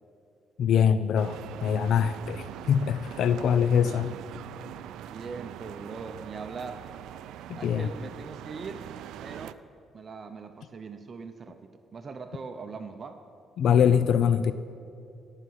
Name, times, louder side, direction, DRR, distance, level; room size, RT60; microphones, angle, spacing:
voice 1, 0.6-4.1 7.5-7.9 13.6-14.5, left 8 dB, 70° left, 13 dB, 0.5 m, -23 dB
sound 1, 1.2-9.5, right 11 dB, 85° right, 0.4 m, -42 dB
voice 2, 3.6-4.2 5.1-6.9 7.5-8.9 9.2-9.6 9.9-13.2, right 4 dB, 40° right, 7 dB, 0.8 m, -41 dB
17.0 x 5.8 x 9.6 m, 2.5 s
cardioid pair, 90°, 0 cm